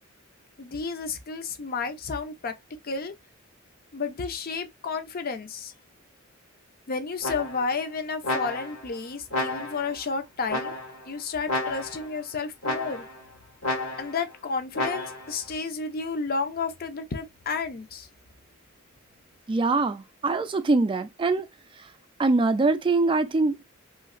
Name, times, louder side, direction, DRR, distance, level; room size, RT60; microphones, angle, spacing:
voice 1, 0.6-2.5 2.8-3.1 3.9-5.7 6.9-10.8 11.0-13.0 14.0-18.1, left 4 dB, 45° left, 0.6 m, -31 dB
sound 1, 7.2-7.8 8.2-8.9 9.3-10.0 10.5-11.1 11.5-12.1 12.6-13.2 13.6-14.3 14.7-15.4, left 2 dB, 80° left, 1.7 m, -31 dB
voice 2, 19.5-21.5 22.2-23.6, right 3 dB, 25° right, 0.3 m, -23 dB
3.1 x 2.7 x 2.5 m
head